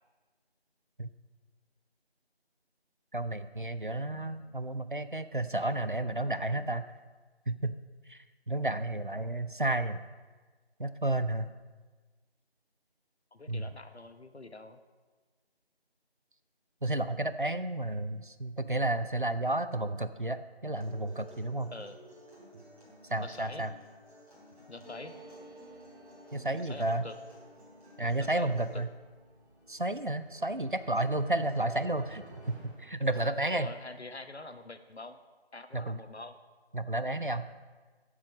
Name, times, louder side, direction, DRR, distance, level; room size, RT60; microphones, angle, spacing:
voice 1, 3.1-6.8 7.5-7.8 8.1-8.2 8.5-10.0 10.8-11.5 13.5-13.7 16.8-21.7 23.1-23.7 26.3-27.1 28.0-28.9 29.7-32.2 32.5-33.7 35.7-36.0 36.7-37.5, right 2 dB, 50° right, 12 dB, 0.5 m, -31 dB
voice 2, 4.3-4.9 13.3-14.8 21.7-22.0 23.2-23.7 24.7-25.2 26.6-27.2 28.2-28.8 33.5-35.2 35.5-36.4, left 2 dB, 80° left, 9 dB, 1.0 m, -45 dB
Acoustic guitar, 20.8-28.8, equal, 35° right, 3.7 m, -54 dB
sound 1, 24.8-34.0 34.3-34.4 34.6-35.2, right 1 dB, 45° left, 1.5 m, -57 dB
sound 2, 29.1-33.7, right 2 dB, 15° right, 2.5 m, -52 dB
14.0 x 7.5 x 5.0 m, 1.4 s
figure-of-eight pair, 175°, 32 cm